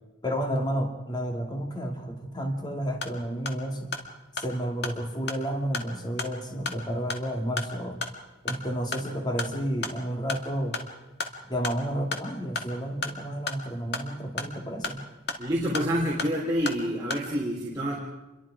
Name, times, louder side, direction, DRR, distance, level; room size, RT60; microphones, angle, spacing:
voice 1, 0.2-3.9 4.3-8.0 8.4-10.8 11.5-15.0, equal, 20° left, 3 dB, 2.2 m, -31 dB
sound 1, 2.8-17.3, left 3 dB, 55° left, 2.3 m, -37 dB
voice 2, 15.4-17.9, equal, 20° right, -5 dB, 3.6 m, -27 dB
28.0 x 23.0 x 5.0 m, 1.1 s
head